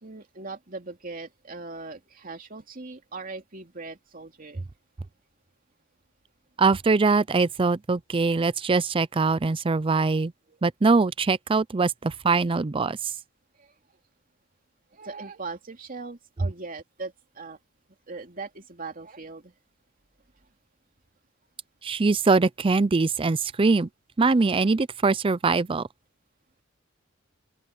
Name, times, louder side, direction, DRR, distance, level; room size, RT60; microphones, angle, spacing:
voice 1, 0.0-4.6 9.9-10.0 11.8-11.9 14.9-17.6 18.1-19.5, right 3 dB, 45° right, 2.7 m, -40 dB
voice 2, 6.6-10.3 10.6-13.0 21.8-23.9 24.2-25.9, right 4 dB, 25° right, 0.4 m, -22 dB
open air
head